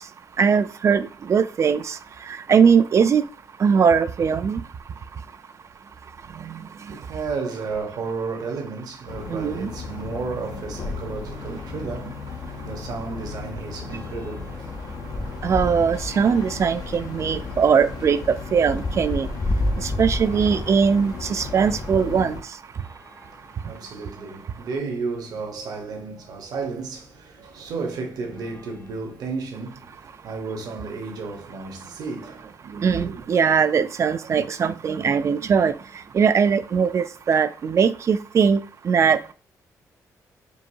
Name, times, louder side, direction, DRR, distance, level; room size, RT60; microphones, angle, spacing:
voice 1, 0.4-2.0 2.5-3.2 3.6-4.6 6.5-6.6 9.3-9.7 15.4-18.2 18.5-19.3 19.8-22.4 32.8-35.7 36.1-38.6 38.8-39.3, right 6 dB, 45° right, 0.3 m, -20 dB
voice 2, 6.9-15.5 23.2-33.2, right 4 dB, 75° right, 0.9 m, -33 dB
sound 1, 9.1-22.4, left 4 dB, 70° left, 0.6 m, -36 dB
sound 2, 12.5-22.0 22.7-24.1 24.8-24.9 25.1-25.2 26.9-27.0 27.6-27.9 28.3-29.6, left 1 dB, 30° left, 0.6 m, -33 dB
4.6 x 2.6 x 2.6 m
cardioid pair, 90°, 7 cm